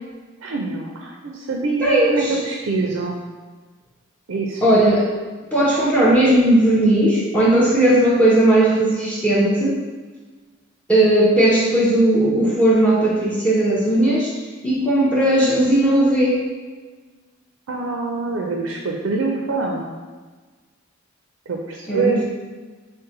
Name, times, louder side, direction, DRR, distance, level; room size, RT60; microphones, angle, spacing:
voice 1, 0.4-3.2 4.3-4.8 17.7-19.9 21.5-22.2, right 3 dB, 90° right, 0 dB, 0.5 m, -25 dB
voice 2, 1.8-2.4 4.6-5.0 5.5-9.8 10.9-14.3 14.6-16.4 21.9-22.2, right 1 dB, 5° left, -5 dB, 0.6 m, -17 dB
5.4 x 2.1 x 3.8 m, 1.4 s
head